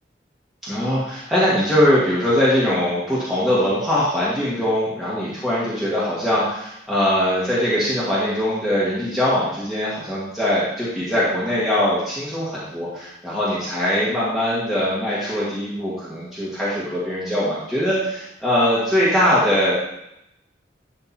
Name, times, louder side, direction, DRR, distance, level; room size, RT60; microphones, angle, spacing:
voice 1, 0.6-19.7, equal, ahead, -10 dB, 1.9 m, -21 dB
11.5 x 3.9 x 4.4 m, 0.82 s
head